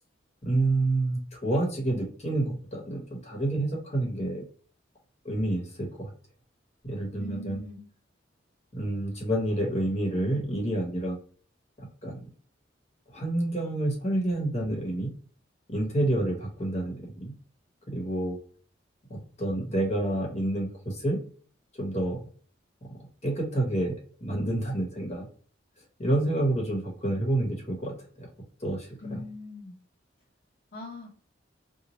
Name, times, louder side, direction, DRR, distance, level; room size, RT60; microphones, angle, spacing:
voice 1, 0.4-4.4 5.2-6.1 6.8-7.6 8.7-11.2 11.8-12.2 13.1-15.1 15.7-17.3 17.9-18.4 19.1-21.2 21.7-22.3 22.8-22.9 23.2-25.3 26.0-28.3 28.6-29.2, right 1 dB, 35° left, 0 dB, 1.0 m, -29 dB
voice 2, 7.2-7.8 29.0-29.8 30.7-31.2, left 1 dB, 65° left, -5 dB, 0.8 m, -41 dB
3.0 x 2.1 x 4.1 m, 0.43 s
head